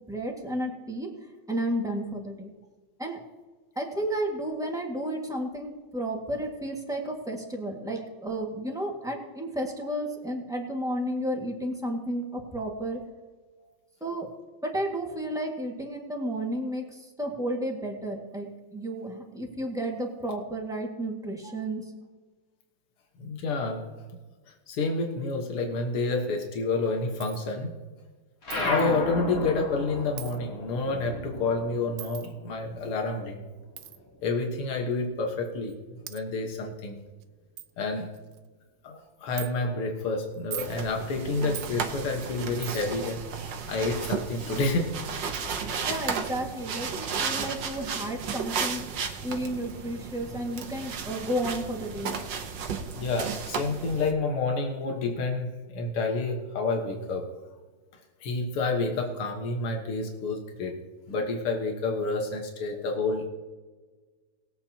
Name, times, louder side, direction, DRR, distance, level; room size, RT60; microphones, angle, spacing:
voice 1, 0.1-1.1 1.5-2.5 3.0-3.2 3.7-13.0 14.0-14.3 14.6-21.9 45.8-48.8 49.2-52.2 62.7-62.8, right 1 dB, ahead, 0 dB, 1.5 m, -32 dB
voice 2, 23.2-23.9 24.5-27.7 28.6-33.4 34.2-35.8 36.1-37.0 37.8-38.1 38.8-45.0 53.0-57.3 58.2-60.8 61.1-63.3, left 3 dB, 85° left, 2 dB, 2.3 m, -29 dB
Coin (dropping), 27.2-27.5 28.5-28.9 30.2-30.4 32.0-32.3 33.8-34.0 34.9-35.0 35.7-35.8 36.1-36.2 36.8-36.9 37.2-37.3 37.6-37.7 38.1-38.5 39.4-39.5 40.3-40.8 41.5-41.8 42.6-43.0 44.6-44.7 45.3-45.5, right 12 dB, 85° right, 0.8 m, -40 dB
sound 1, 28.4-33.3 33.6-35.1, left 2 dB, 35° left, 1.7 m, -34 dB
sound 2, 40.6-54.1, right 6 dB, 60° right, 1.6 m, -34 dB
20.5 x 8.6 x 2.9 m, 1.3 s
omnidirectional pair, 2.3 m